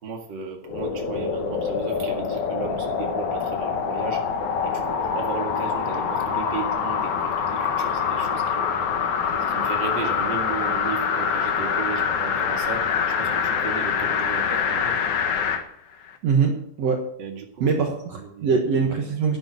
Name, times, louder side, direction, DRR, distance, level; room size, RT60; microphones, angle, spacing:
voice 1, 0.0-4.2 4.6-8.8 9.3-15.0 17.2-17.6 18.1-18.5, right 5 dB, 40° right, 2 dB, 2.3 m, -35 dB
sound 1, 0.7-15.6 16.1-16.2, left 6 dB, 70° left, 2.7 m, -25 dB
voice 2, 16.2-17.0 17.6-19.4, right 5 dB, 60° right, 2 dB, 2.4 m, -23 dB
11.5 x 11.0 x 6.1 m, 0.67 s
omnidirectional pair, 3.6 m